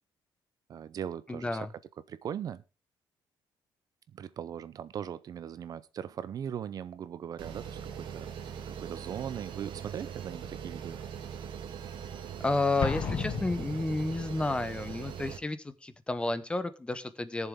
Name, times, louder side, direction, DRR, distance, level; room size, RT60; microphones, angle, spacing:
voice 1, 0.7-1.7 2.1-2.6 4.1-11.0, right 9 dB, 45° right, 17 dB, 0.5 m, -39 dB
voice 2, 1.3-1.7 12.4-17.5, left 2 dB, 10° left, 14 dB, 0.8 m, -31 dB
sound 1, 7.4-15.4, right 8 dB, 65° right, 1.6 m, -41 dB
Explosion, 12.8-14.4, left 7 dB, 45° left, 0.9 m, -34 dB
18.5 x 7.2 x 3.6 m, 0.32 s
cardioid pair, 165°, 9 cm